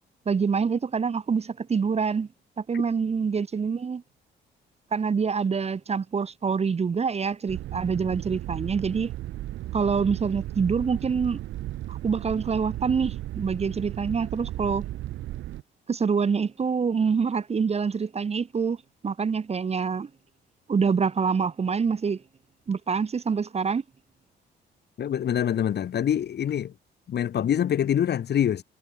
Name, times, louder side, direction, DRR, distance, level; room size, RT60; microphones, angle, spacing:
voice 1, 0.3-2.3 2.6-4.0 4.9-9.1 9.7-11.4 11.9-14.8 15.9-18.8 19.0-20.1 20.7-22.2 22.7-23.8, right 5 dB, 30° right, 0.9 m, -26 dB
sound 1, 7.5-15.6, right 15 dB, 75° right, 0.7 m, -35 dB
voice 2, 25.0-26.7 27.1-28.6, left 9 dB, 55° left, 1.4 m, -25 dB
cardioid pair, 90°, 20 cm